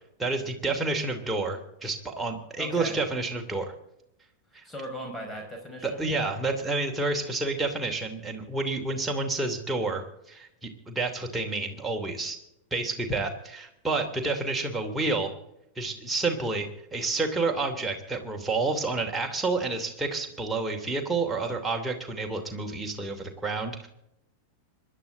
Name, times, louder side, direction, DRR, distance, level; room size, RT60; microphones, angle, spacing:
voice 1, 0.2-3.7 4.5-4.6 5.8-12.4 12.7-15.3 15.8-23.9, right 3 dB, 10° right, 1 dB, 2.8 m, -29 dB
voice 2, 2.6-3.0 4.6-6.1, equal, 15° left, 3 dB, 5.3 m, -38 dB
25.5 x 11.5 x 3.9 m, 0.82 s
figure-of-eight pair, 90°, 0 cm